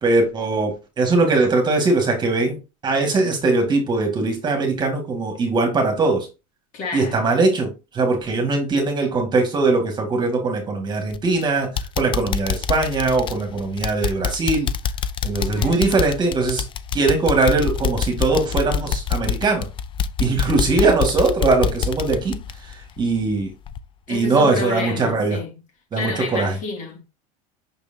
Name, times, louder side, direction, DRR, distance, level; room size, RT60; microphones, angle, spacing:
voice 1, 0.0-6.3 6.9-14.7 15.2-16.6 16.9-19.7 20.2-23.5 24.1-25.4 25.9-26.6, right 3 dB, 25° right, 2.0 m, -21 dB
voice 2, 6.7-7.2 15.4-15.9 24.1-25.5 25.9-27.0, left 3 dB, 45° left, 2.8 m, -29 dB
sound 1, 11.1-11.4 11.8-23.3 23.7-23.8 24.3-24.4, left 7 dB, 30° left, 0.5 m, -26 dB
6.8 x 6.1 x 2.8 m
supercardioid pair, 135°, 18 cm